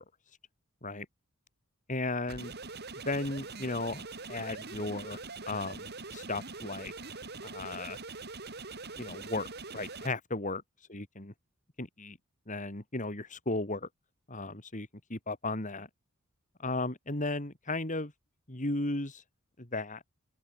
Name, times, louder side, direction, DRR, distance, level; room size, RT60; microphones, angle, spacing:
voice 1, 1.9-2.5 3.0-5.2 5.5-6.9 7.4-8.0 9.0-9.5 9.7-10.6 10.9-11.3 11.8-12.2 12.5-13.9 14.3-15.9 16.6-18.1 18.5-19.2 19.6-20.0, left 2 dB, 35° left, 3.4 m, -35 dB
sound 1, 2.3-10.1, right 3 dB, 50° right, 4.9 m, -43 dB
open air
head